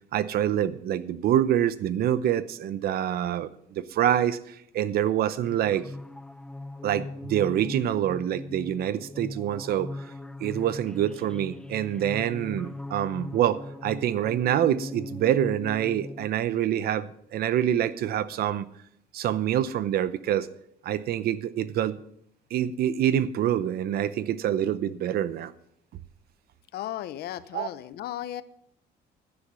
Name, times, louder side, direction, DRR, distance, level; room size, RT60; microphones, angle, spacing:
voice 1, 0.1-5.8 6.8-9.9 10.4-18.6 19.1-20.5 20.8-22.0 22.5-25.5 27.5-27.7, right 11 dB, 65° right, 16 dB, 0.7 m, -26 dB
sound 1, 5.4-16.3, left 2 dB, 5° left, 0.5 m, -39 dB
voice 2, 26.7-28.4, left 13 dB, 70° left, 15 dB, 0.7 m, -35 dB
11.5 x 9.9 x 5.6 m, 0.71 s
cardioid pair, 110°, 17 cm